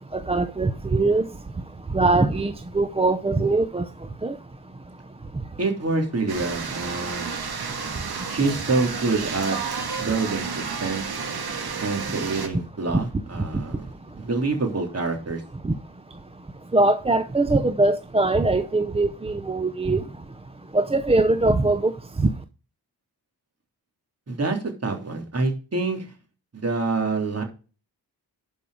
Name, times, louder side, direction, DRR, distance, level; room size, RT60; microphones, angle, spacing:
voice 1, 0.1-1.2 1.9-3.9 4.2-4.3 15.6-15.7 16.7-20.0 20.7-21.9 22.2-22.3, right 2 dB, 15° right, 0.6 m, -21 dB
voice 2, 5.6-7.3 8.3-9.6 10.0-11.0 11.8-15.4 24.3-26.1 26.5-27.4, right 3 dB, 40° right, 3.3 m, -26 dB
sound 1, 6.3-12.5, right 5 dB, 65° right, 2.6 m, -31 dB
11.5 x 5.5 x 4.9 m
wide cardioid pair, 125°, 40 cm